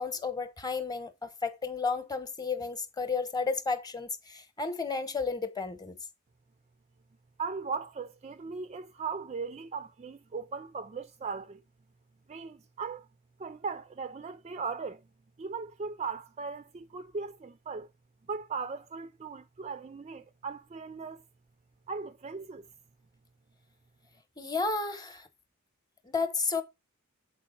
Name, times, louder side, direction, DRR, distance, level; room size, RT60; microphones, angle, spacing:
voice 1, 0.0-5.9 24.4-25.3 26.1-26.6, left 4 dB, 20° left, 0.9 m, -32 dB
voice 2, 7.4-11.6 12.3-13.1 13.4-15.0 15.4-17.9 18.3-21.2 21.9-22.7, right 5 dB, 30° right, 0.4 m, -38 dB
7.5 x 4.5 x 4.4 m
head